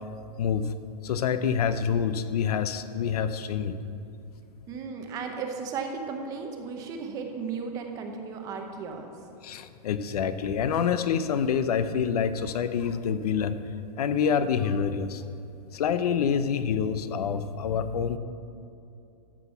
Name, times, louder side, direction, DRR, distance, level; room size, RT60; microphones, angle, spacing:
voice 1, 0.4-0.7 1.0-3.8 9.4-13.6 14.0-15.2 15.7-18.2, left 7 dB, 70° left, 12 dB, 0.6 m, -27 dB
voice 2, 4.7-9.1, right 5 dB, 15° right, 4 dB, 0.7 m, -35 dB
14.0 x 6.1 x 5.7 m, 2.7 s
supercardioid pair, 170°, 21 cm